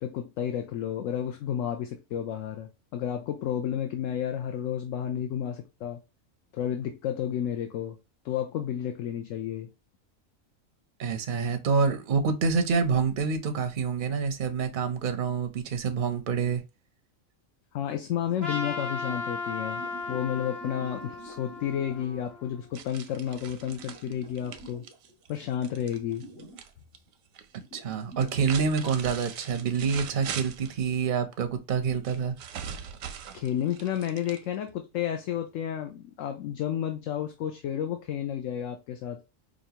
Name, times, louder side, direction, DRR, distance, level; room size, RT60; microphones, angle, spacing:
voice 1, 0.0-6.0 6.5-8.0 8.2-9.7 17.7-19.8 20.1-24.8 25.3-26.2 33.3-39.2, left 10 dB, 75° left, 0.9 m, -31 dB
voice 2, 11.0-16.6 27.7-32.4, right 5 dB, 55° right, 0.6 m, -27 dB
sound 1, 18.2-22.8 23.6-25.1 25.4-26.7 27.1-27.2 27.6-28.9 29.7-30.5, right 1 dB, 50° left, 1.8 m, -48 dB
Trumpet, 18.4-22.7, left 4 dB, 35° left, 1.0 m, -36 dB
sound 2, 22.7-26.7 26.9-27.6 28.1-30.8 32.0-34.7, right 8 dB, 85° right, 1.0 m, -41 dB
5.0 x 2.5 x 2.8 m
omnidirectional pair, 1.4 m